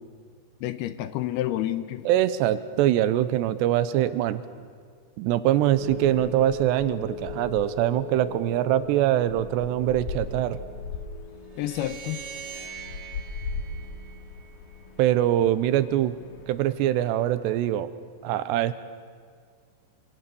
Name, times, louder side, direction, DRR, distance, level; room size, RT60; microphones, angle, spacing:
voice 1, 0.6-2.1 11.6-12.2, left 13 dB, 80° left, 12 dB, 2.6 m, -29 dB
voice 2, 2.1-4.4 5.2-10.6 15.0-16.2 16.5-17.9 18.2-18.7, right 12 dB, 85° right, 13 dB, 3.0 m, -23 dB
sound 1, 5.5-16.7, left 4 dB, 60° left, 3.1 m, -38 dB
sound 2, 11.5-14.8, right 7 dB, 55° right, 2.4 m, -42 dB
26.5 x 25.0 x 7.0 m, 2.1 s
omnidirectional pair, 4.9 m